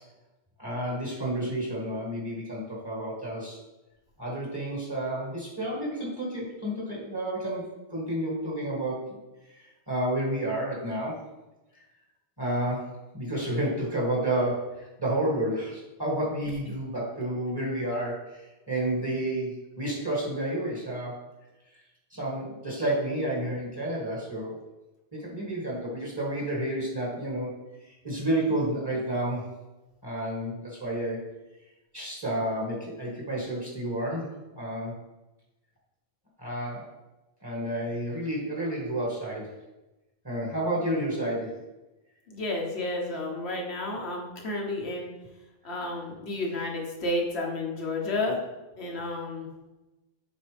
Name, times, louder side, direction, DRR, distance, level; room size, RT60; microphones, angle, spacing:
voice 1, 0.6-3.6 4.2-7.6 7.9-9.2 9.6-11.2 12.4-21.2 22.1-24.5 25.1-27.5 27.8-29.5 30.0-31.2 31.9-34.3 34.6-34.9 36.4-36.9 37.4-39.5 40.2-41.6, right 1 dB, 20° right, -5 dB, 1.8 m, -30 dB
voice 2, 42.3-45.1 45.6-48.4 48.8-49.5, left 2 dB, 90° left, 0 dB, 1.5 m, -31 dB
7.6 x 4.1 x 3.4 m, 1.0 s
omnidirectional pair, 1.0 m